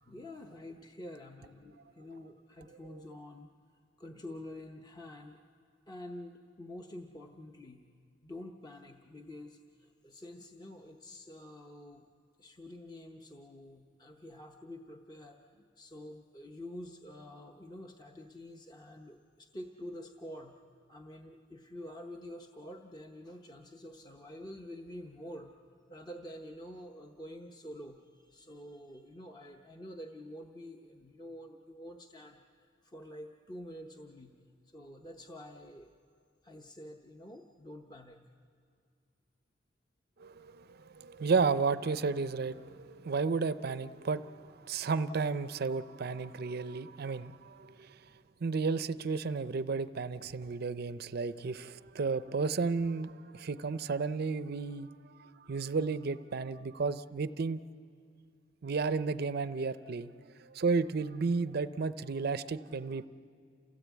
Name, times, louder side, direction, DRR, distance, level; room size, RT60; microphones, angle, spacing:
voice 1, 0.0-3.5 4.0-5.4 5.9-7.9 8.2-12.1 12.4-20.6 20.9-25.5 25.9-34.4 34.6-35.9 36.4-38.2, left 1 dB, 20° left, 3 dB, 0.8 m, -48 dB
voice 2, 40.2-48.0 48.4-54.9 55.2-57.6 58.6-60.1 60.4-63.1, right 4 dB, 55° right, 14 dB, 0.5 m, -33 dB
28.5 x 16.5 x 8.3 m, 2.3 s
head